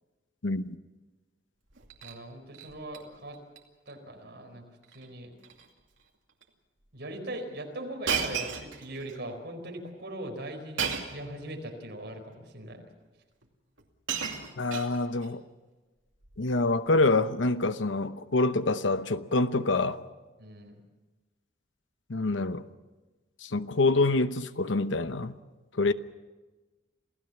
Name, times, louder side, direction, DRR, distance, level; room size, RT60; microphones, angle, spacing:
voice 1, 0.4-0.8 14.6-15.4 16.4-20.0 22.1-22.7 23.4-25.4 25.7-25.9, left 2 dB, 75° left, 0.9 m, -26 dB
Shatter, 1.7-2.2 2.5-3.0 3.3-3.6 3.9-4.0 4.8-5.1 5.4-5.7 6.4-6.5 8.1-9.2 10.8-11.3 12.3-12.4 13.4-13.5 13.8-15.3 16.2-16.5, right 6 dB, 85° right, 2.5 m, -34 dB
voice 2, 2.0-3.4 3.9-5.3 6.9-12.8 20.4-20.8, right 1 dB, 55° right, 4.6 m, -40 dB
27.5 x 16.5 x 7.2 m
head